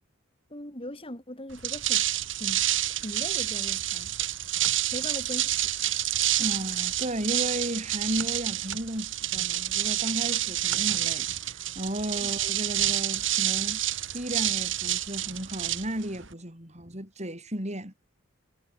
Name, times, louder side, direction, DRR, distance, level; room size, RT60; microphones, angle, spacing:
voice 1, 0.5-2.0 2.4-2.6 2.9-4.1 4.9-5.7 12.2-12.3, left 1 dB, 25° left, 6.8 m, -39 dB
sound 1, 1.5-16.3, right 13 dB, 65° right, 6.7 m, -28 dB
voice 2, 6.4-13.8 14.1-17.9, right 1 dB, 35° right, 6.6 m, -34 dB
head